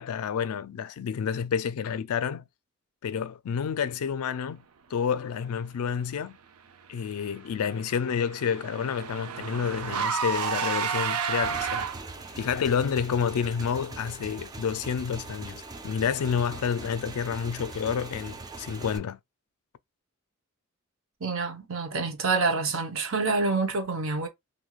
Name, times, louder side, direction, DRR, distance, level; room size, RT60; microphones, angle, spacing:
voice 1, 0.0-2.4 3.0-4.6 4.9-6.4 6.9-11.9 12.4-19.2, left 7 dB, 80° left, 0.4 m, -29 dB
Car / Engine, 7.2-12.3, right 7 dB, 90° right, 0.5 m, -31 dB
Motorcycle / Engine, 11.4-19.0, right 2 dB, 15° right, 0.3 m, -41 dB
voice 2, 21.2-24.3, right 4 dB, 65° right, 0.8 m, -27 dB
3.0 x 2.6 x 2.3 m
head